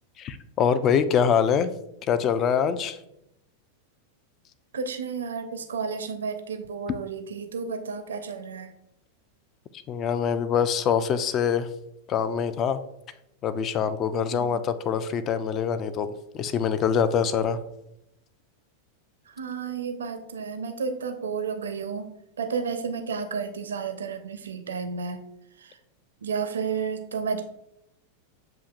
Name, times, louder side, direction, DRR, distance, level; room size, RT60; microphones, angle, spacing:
voice 1, 0.2-1.7 2.1-3.0 9.9-11.7 12.1-12.8 13.4-16.1 16.3-17.6, left 7 dB, 30° left, 13 dB, 0.3 m, -24 dB
voice 2, 4.7-8.7 14.3-14.6 19.3-22.1 22.4-25.2 25.6-25.8 26.2-27.4, right 5 dB, 65° right, 7 dB, 0.5 m, -32 dB
8.1 x 2.7 x 2.4 m, 0.83 s
figure-of-eight pair, 90°, 0 cm